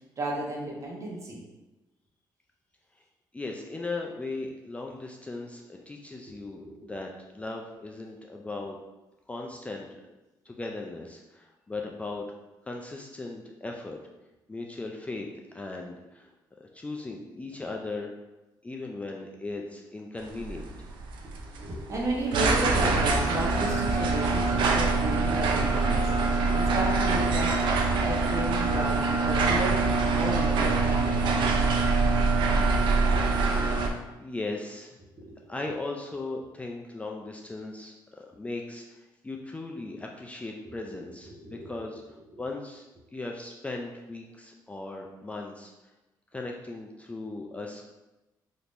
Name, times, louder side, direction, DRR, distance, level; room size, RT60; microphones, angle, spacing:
voice 1, 0.2-1.4 6.3-7.0 21.2-27.6 28.0-29.8 30.1-31.8 35.2-35.6 41.2-41.8 42.3-42.4, right 1 dB, 40° right, -2 dB, 0.9 m, -34 dB
voice 2, 3.3-7.1 7.3-8.8 9.3-10.0 10.5-12.3 12.7-14.0 14.5-15.3 15.5-16.3 16.6-18.1 18.6-20.7 34.2-35.0 35.5-42.9 43.1-45.7 46.3-47.9, left 2 dB, 15° left, 0 dB, 0.3 m, -38 dB
sound 1, 20.2-33.9, right 3 dB, 85° right, 0.4 m, -24 dB
3.5 x 2.8 x 2.5 m, 1.0 s
cardioid pair, 90°, 8 cm